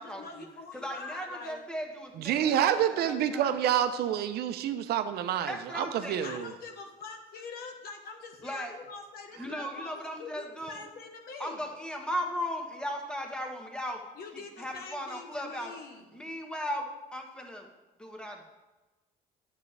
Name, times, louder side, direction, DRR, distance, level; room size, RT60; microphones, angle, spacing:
voice 1, 0.0-1.6 6.2-11.6 14.2-16.2, left 4 dB, 65° left, 4 dB, 1.2 m, -44 dB
voice 2, 0.7-3.5 5.5-6.3 8.4-8.7 9.4-10.9 11.4-14.0 14.6-15.7 16.1-17.7 18.0-18.5, equal, 5° left, 2 dB, 1.3 m, -37 dB
voice 3, 2.2-6.5, right 10 dB, 70° right, 10 dB, 0.7 m, -28 dB
9.5 x 7.3 x 3.4 m, 1.1 s
cardioid pair, 110°, 17 cm